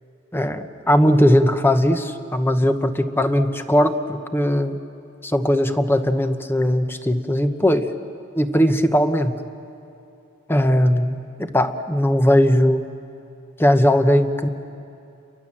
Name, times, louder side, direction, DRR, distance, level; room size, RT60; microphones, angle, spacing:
voice 1, 0.3-4.8 5.2-7.9 8.3-9.4 10.5-12.8 13.6-14.5, equal, 10° left, 8 dB, 1.0 m, -19 dB
30.0 x 23.0 x 7.4 m, 2.7 s
head